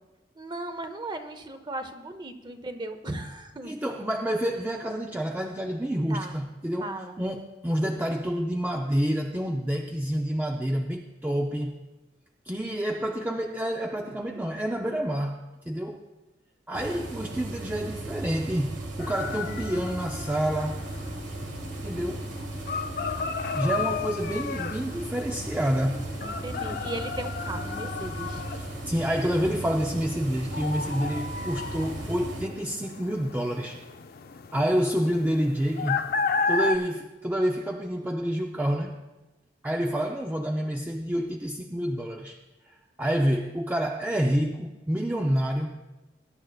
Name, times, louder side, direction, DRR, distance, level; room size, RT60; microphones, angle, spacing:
voice 1, 0.3-3.7 6.1-6.4 6.8-7.2 26.2-28.5, right 2 dB, 25° right, 8 dB, 0.9 m, -37 dB
voice 2, 3.6-11.8 12.5-16.0 16.7-20.9 21.8-22.3 23.5-26.0 28.6-33.8 34.5-36.1 36.5-39.0 39.6-42.4 42.7-45.8, equal, 10° right, 1 dB, 0.5 m, -28 dB
sound 1, 16.7-32.4, right 2 dB, 80° right, 1.4 m, -36 dB
sound 2, 19.0-36.8, left 5 dB, 55° left, 0.5 m, -34 dB
21.0 x 10.5 x 2.4 m, 1.1 s
head